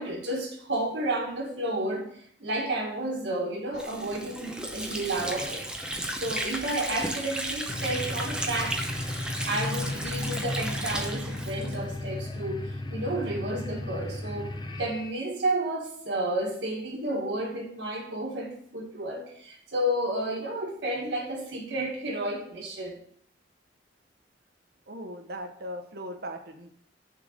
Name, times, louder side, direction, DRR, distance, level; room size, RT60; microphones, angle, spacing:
voice 1, 0.0-2.1 2.4-5.6 6.2-8.9 9.5-23.0, right 1 dB, 90° right, 1.8 m, -31 dB
Water / Sink (filling or washing), 3.7-12.3, right 1 dB, 5° right, 0.8 m, -34 dB
sound 1, 7.7-15.1, left 2 dB, 25° left, 0.6 m, -35 dB
voice 2, 24.9-26.7, equal, 60° right, 1.0 m, -38 dB
6.5 x 4.2 x 6.5 m
head